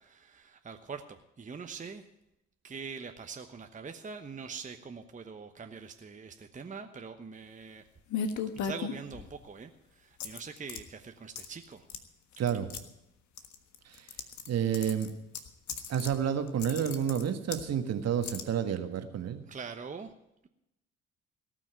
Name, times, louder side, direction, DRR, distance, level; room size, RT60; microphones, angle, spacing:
voice 1, 0.0-2.0 2.6-7.8 8.5-11.9 19.5-20.1, right 5 dB, 25° right, 6 dB, 1.1 m, -43 dB
sound 1, 8.1-9.4 10.2-10.8 11.3-11.6 11.9-12.0 12.3-12.8 13.4-14.5 14.7-16.1 16.5-17.6 18.2-18.4, left 6 dB, 55° left, 1.4 m, -36 dB
voice 2, 12.4-12.7 13.8-14.1 14.5-15.1 15.9-19.4, right 8 dB, 50° right, 7 dB, 1.6 m, -30 dB
18.0 x 6.2 x 9.1 m, 0.84 s
hypercardioid pair, 55°, 33 cm